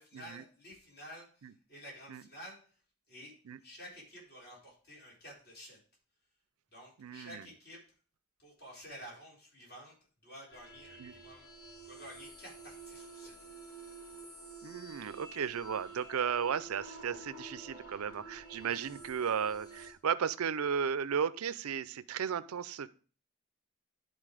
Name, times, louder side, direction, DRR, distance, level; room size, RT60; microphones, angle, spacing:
voice 1, 0.0-2.6 3.1-3.3 3.6-5.8 6.7-7.8 8.4-9.9 10.2-11.5 11.8-13.4 18.6-18.8, equal, 45° left, -4 dB, 4.1 m, -51 dB
voice 2, 7.0-7.4 11.0-11.1 14.6-22.9, right 7 dB, 85° right, 16 dB, 0.5 m, -35 dB
sound 1, 10.5-19.9, right 3 dB, 80° left, 2.6 m, -50 dB
11.0 x 4.0 x 4.9 m, 0.39 s
head